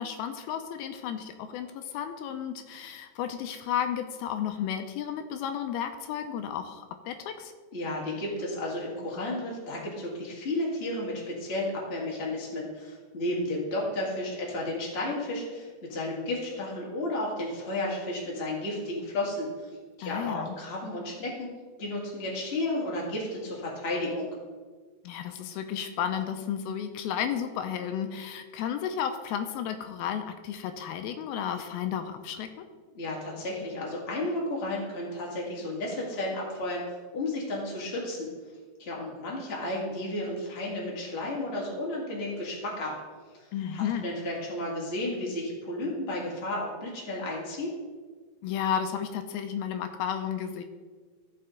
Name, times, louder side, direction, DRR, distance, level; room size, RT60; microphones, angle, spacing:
voice 1, 0.0-7.5 20.0-20.6 25.0-32.7 43.5-44.1 48.4-50.6, left 9 dB, 85° left, 8 dB, 2.4 m, -33 dB
voice 2, 7.7-19.7 20.0-21.5 21.8-24.3 32.9-36.8 37.1-38.3 38.8-42.9 43.4-47.7, left 1 dB, 25° left, -3 dB, 1.3 m, -33 dB
14.5 x 5.5 x 3.8 m, 1.5 s
omnidirectional pair, 4.4 m